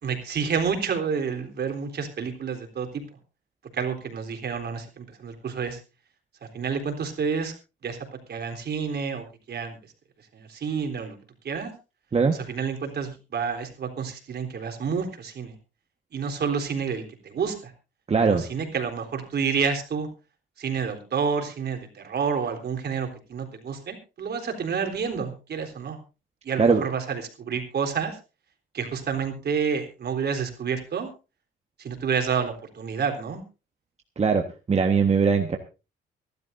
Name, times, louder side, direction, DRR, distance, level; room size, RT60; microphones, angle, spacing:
voice 1, 0.0-3.0 3.7-5.8 6.5-7.5 7.8-9.8 10.3-11.2 11.4-11.7 12.3-15.5 16.1-17.7 18.3-20.1 20.6-26.0 26.4-28.2 28.7-31.1 31.8-33.4, right 6 dB, 55° right, 4 dB, 3.7 m, -29 dB
voice 2, 18.1-18.4 26.6-26.8 34.2-35.6, right 5 dB, 30° right, 4 dB, 1.4 m, -21 dB
24.5 x 12.0 x 2.7 m, 0.31 s
cardioid pair, 90°, 20 cm